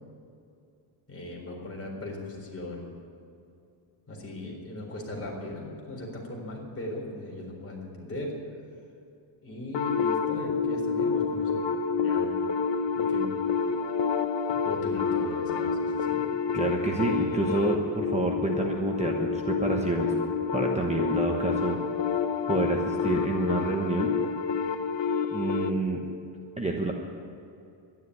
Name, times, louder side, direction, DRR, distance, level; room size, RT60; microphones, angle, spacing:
voice 1, 1.1-2.9 4.1-8.4 9.4-11.6 12.0-12.3 12.9-13.3 14.5-16.2, left 1 dB, 30° left, -1 dB, 4.1 m, -38 dB
sound 1, 9.7-25.7, left 5 dB, 65° left, 1.0 m, -28 dB
voice 2, 16.5-20.1 20.5-21.8 22.5-24.1 25.3-26.0 26.6-26.9, right 2 dB, 15° right, 1 dB, 1.1 m, -28 dB
12.0 x 11.0 x 9.8 m, 2.6 s
cardioid pair, 140°, 47 cm